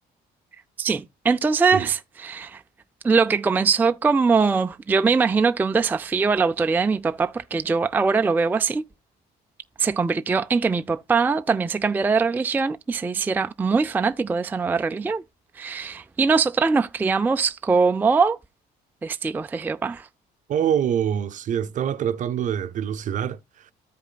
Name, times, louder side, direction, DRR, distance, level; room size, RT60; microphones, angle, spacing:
voice 1, 0.8-2.6 3.0-8.9 9.8-15.2 15.6-18.4 19.0-20.1, right 4 dB, 10° right, 0.3 m, -22 dB
voice 2, 20.5-23.7, right 9 dB, 50° right, 0.6 m, -25 dB
14.0 x 5.0 x 2.2 m
cardioid pair, 110°, 17 cm